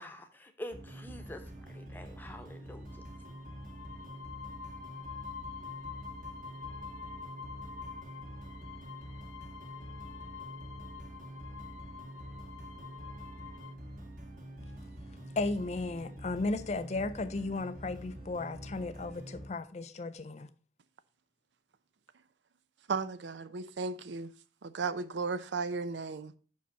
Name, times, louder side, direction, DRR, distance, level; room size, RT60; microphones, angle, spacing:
voice 1, 0.0-3.0, left 1 dB, 10° left, 0.9 m, -46 dB
sound 1, 0.7-19.5, right 1 dB, 45° right, 1.7 m, -46 dB
sound 2, 2.9-13.7, left 6 dB, 80° left, 0.6 m, -47 dB
voice 2, 15.1-20.5, left 3 dB, 35° left, 0.4 m, -35 dB
voice 3, 22.9-24.3 24.6-26.4, right 4 dB, 75° right, 0.5 m, -35 dB
5.6 x 5.1 x 6.7 m
head